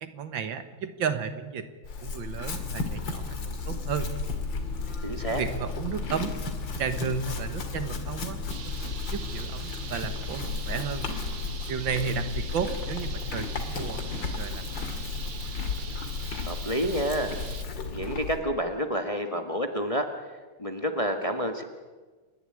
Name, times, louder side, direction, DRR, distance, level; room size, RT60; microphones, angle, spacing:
voice 1, 0.0-1.7 2.0-4.1 5.3-6.4 6.8-8.4 8.6-11.1 11.7-15.0, right 6 dB, 75° right, 10 dB, 2.1 m, -33 dB
Chewing mastication / Livestock farm animals working animals, 1.8-18.4, left 4 dB, 70° left, 2.8 m, -33 dB
voice 2, 5.0-5.4 16.4-17.3 17.8-20.1 20.6-21.6, equal, 20° left, 5 dB, 1.3 m, -29 dB
sound 1, 8.5-17.6, right 7 dB, 55° right, 1.7 m, -43 dB
28.5 x 11.5 x 10.0 m, 1.4 s
omnidirectional pair, 2.1 m